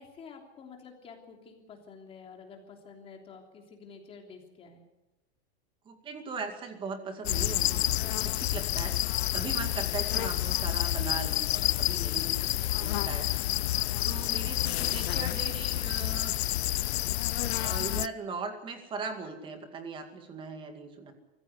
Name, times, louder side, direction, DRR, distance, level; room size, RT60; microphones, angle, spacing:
voice 1, 0.0-4.9 10.2-10.3, left 5 dB, 20° left, 3 dB, 3.2 m, -49 dB
voice 2, 5.9-9.0 9.3-12.3 12.8-13.3 13.6-13.7 14.0-16.4 17.6-21.1, right 4 dB, 15° right, 6 dB, 2.3 m, -39 dB
sound 1, 7.2-18.1, left 15 dB, 75° left, 0.7 m, -29 dB
24.0 x 15.5 x 8.1 m, 1.0 s
supercardioid pair, 175°, 32 cm